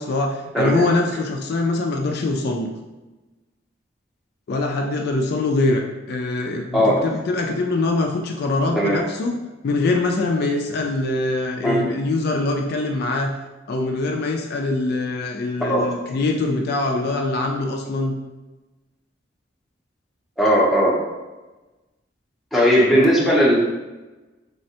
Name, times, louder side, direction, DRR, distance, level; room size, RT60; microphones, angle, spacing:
voice 1, 0.0-2.7 4.5-9.3 9.6-13.3 13.7-18.2 22.9-23.1, left 2 dB, 60° left, 2 dB, 0.3 m, -23 dB
voice 2, 20.4-21.0 22.5-23.6, equal, ahead, -7 dB, 0.6 m, -17 dB
3.3 x 2.1 x 2.7 m, 1.1 s
head